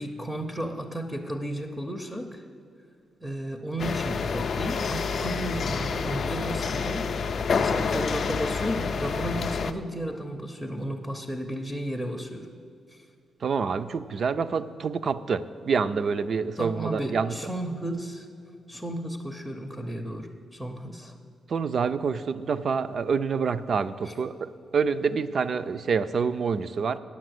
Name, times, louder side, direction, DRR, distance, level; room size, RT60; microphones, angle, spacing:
voice 1, 0.0-2.4 3.2-12.5 12.9-13.1 16.6-18.3 18.7-21.1 24.0-24.1, right 1 dB, ahead, 6 dB, 0.6 m, -33 dB
sound 1, 3.8-9.7, left 5 dB, 50° left, 0.4 m, -28 dB
voice 2, 13.4-17.3 21.5-27.0, right 5 dB, 45° right, 13 dB, 0.4 m, -27 dB
9.9 x 7.3 x 7.8 m, 2.4 s
wide cardioid pair, 145°, 0 cm